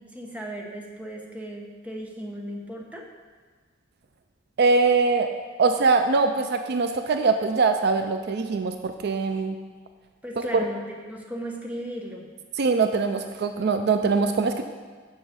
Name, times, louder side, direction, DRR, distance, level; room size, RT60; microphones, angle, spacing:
voice 1, 0.0-3.0 10.2-12.3, equal, 10° right, -1 dB, 1.0 m, -36 dB
voice 2, 4.6-5.3 5.6-9.6 12.6-14.6, right 4 dB, 60° right, 7 dB, 0.4 m, -22 dB
7.0 x 6.4 x 5.7 m, 1.5 s
head